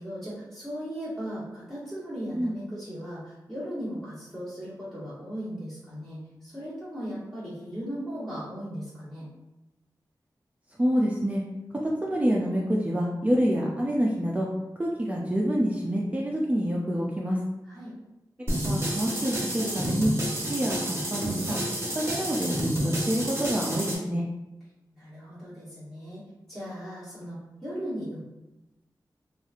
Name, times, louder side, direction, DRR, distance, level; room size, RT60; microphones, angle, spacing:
voice 1, 0.0-9.3 17.7-17.9 24.9-28.2, equal, 5° left, -12 dB, 1.1 m, -37 dB
voice 2, 10.8-11.4 11.8-14.5 14.8-17.4 18.6-20.1 20.4-21.6 21.9-24.2, equal, 20° right, -4 dB, 0.4 m, -27 dB
sound 1, 18.5-24.0, right 1 dB, 35° right, 0.7 m, -29 dB
3.0 x 2.3 x 2.4 m, 0.99 s
wide cardioid pair, 90°, 8 cm